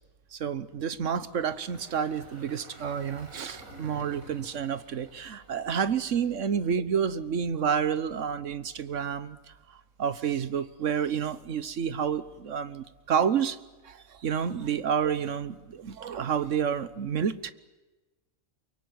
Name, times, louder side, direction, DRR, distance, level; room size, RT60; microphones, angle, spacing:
voice 1, 0.3-9.4 10.0-13.6 13.8-17.5, right 7 dB, 65° right, 15 dB, 1.4 m, -29 dB
Engine, 1.3-6.6, right 2 dB, 90° right, 6.6 m, -50 dB
23.5 x 23.0 x 9.5 m, 1.1 s
omnidirectional pair, 1.4 m